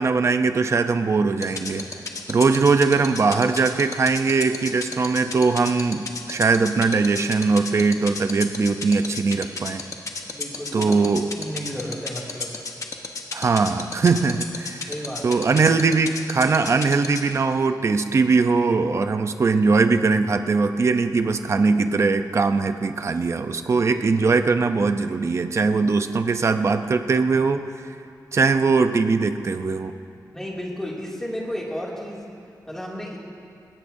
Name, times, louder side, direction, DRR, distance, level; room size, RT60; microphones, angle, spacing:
voice 1, 0.0-1.8 2.3-9.8 10.7-11.2 13.3-14.9 15.2-27.7 28.3-29.9, right 4 dB, 40° right, 8 dB, 0.7 m, -21 dB
sound 1, 1.4-17.3, left 4 dB, 50° left, 1.2 m, -30 dB
voice 2, 10.3-11.0 11.3-12.6 14.9-15.4 30.3-32.3 32.7-33.2, equal, 5° left, -4 dB, 2.5 m, -33 dB
20.0 x 18.0 x 2.7 m, 2.4 s
wide cardioid pair, 145°, 7 cm